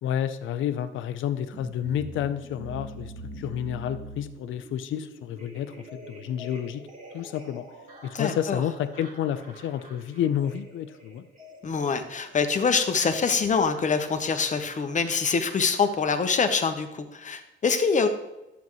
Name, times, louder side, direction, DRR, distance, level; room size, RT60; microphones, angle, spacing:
voice 1, 0.0-6.9 7.1-7.6 8.0-11.2, left 10 dB, 80° left, 11 dB, 0.6 m, -30 dB
sound 1, 1.5-16.7, right 1 dB, 40° right, 1.9 m, -46 dB
voice 2, 8.1-8.6 11.6-18.1, left 5 dB, 40° left, 8 dB, 0.9 m, -25 dB
11.0 x 7.1 x 3.1 m, 0.99 s
cardioid pair, 90°, 20 cm